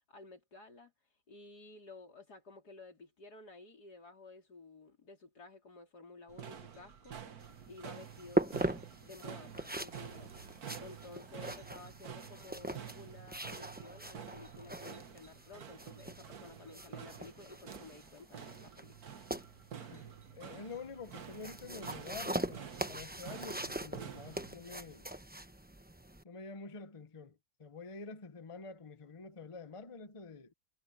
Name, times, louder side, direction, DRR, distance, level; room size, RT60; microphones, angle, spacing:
voice 1, 0.1-0.9 1.3-7.4 7.7-8.7 9.0-18.9 19.8-20.1, left 3 dB, 85° left, 4.2 m, -53 dB
sound 1, 6.3-24.5, right 8 dB, 70° right, 1.8 m, -49 dB
sound 2, 7.4-26.2, right 1 dB, 10° right, 0.7 m, -41 dB
voice 2, 19.9-25.1 26.2-30.5, left 4 dB, 25° left, 0.9 m, -48 dB
omnidirectional pair, 1.7 m